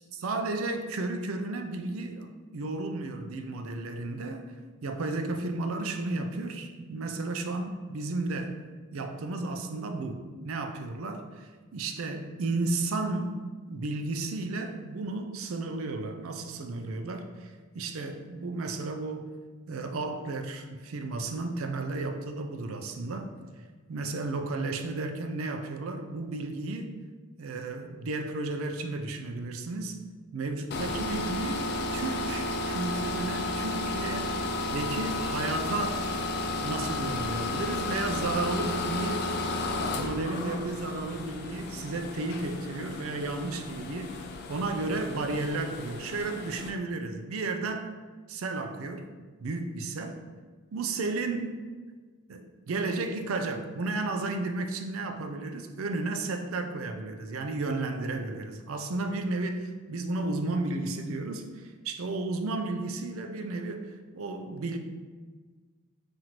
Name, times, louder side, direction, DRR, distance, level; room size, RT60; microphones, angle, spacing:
voice 1, 0.2-4.6 4.8-8.6 8.9-19.3 19.7-23.3 23.9-26.9 27.4-30.0 30.3-36.0 36.4-39.3 39.8-47.9 48.3-49.1 49.4-50.2 50.7-51.7 52.3-64.8, right 2 dB, 75° right, 6 dB, 0.4 m, -33 dB
sound 1, 30.7-46.7, left 2 dB, 50° left, 0.3 m, -33 dB
5.8 x 2.5 x 3.0 m, 1.4 s
head